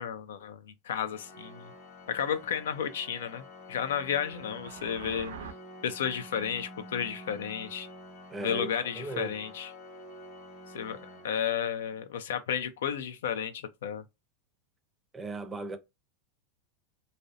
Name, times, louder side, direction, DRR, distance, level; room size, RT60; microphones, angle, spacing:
voice 1, 0.0-1.7 2.1-3.4 3.7-5.3 5.8-7.9 8.4-9.7 10.7-11.0 11.2-14.0, left 8 dB, 85° left, 0.4 m, -32 dB
Organ, 1.1-12.0, left 1 dB, 55° left, 0.8 m, -48 dB
sound 1, 4.1-5.5, right 6 dB, 85° right, 0.4 m, -44 dB
voice 2, 8.3-8.7 9.0-9.3 15.1-15.8, right 3 dB, 15° right, 0.5 m, -36 dB
2.6 x 2.0 x 2.4 m
supercardioid pair, 120°, 0 cm